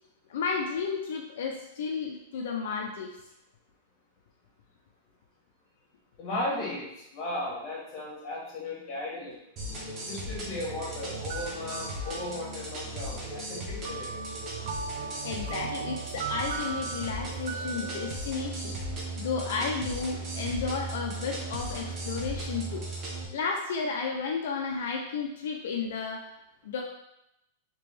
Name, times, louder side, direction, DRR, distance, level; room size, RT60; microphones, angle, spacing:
voice 1, 0.3-3.2 15.2-18.8 19.2-22.8 23.3-26.3 26.6-26.8, left 5 dB, 65° left, 0 dB, 0.4 m, -32 dB
voice 2, 6.2-9.4 10.1-14.1, left 1 dB, 25° left, -4 dB, 1.3 m, -36 dB
sound 1, 9.6-23.2, right 2 dB, 20° right, 0.7 m, -37 dB
sound 2, 11.0-12.9 13.9-18.1, right 5 dB, 50° right, 0.4 m, -39 dB
3.3 x 2.9 x 3.4 m, 0.86 s
supercardioid pair, 170°, 0 cm